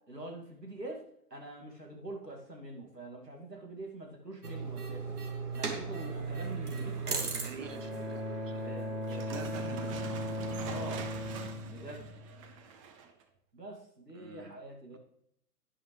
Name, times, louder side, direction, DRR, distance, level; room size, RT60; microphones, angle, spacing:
voice 1, 0.1-1.0 1.3-5.2 5.5-7.3 8.6-9.5 10.6-11.0 11.6-12.1 13.5-15.0, right 1 dB, 85° right, 0 dB, 2.6 m, -45 dB
sound 1, 4.4-10.6, right 4 dB, 70° right, 2.4 m, -38 dB
voice 2, 7.3-7.9 8.5-8.6 9.1-10.1 14.1-14.5 14.9-15.0, right 6 dB, 50° right, 8 dB, 1.4 m, -46 dB
Bowed string instrument, 7.6-12.6, left 1 dB, ahead, 1.2 m, -38 dB
sound 2, 9.0-13.2, right 6 dB, 20° right, 0.7 m, -44 dB
11.5 x 9.9 x 3.3 m, 0.72 s
figure-of-eight pair, 115°, 48 cm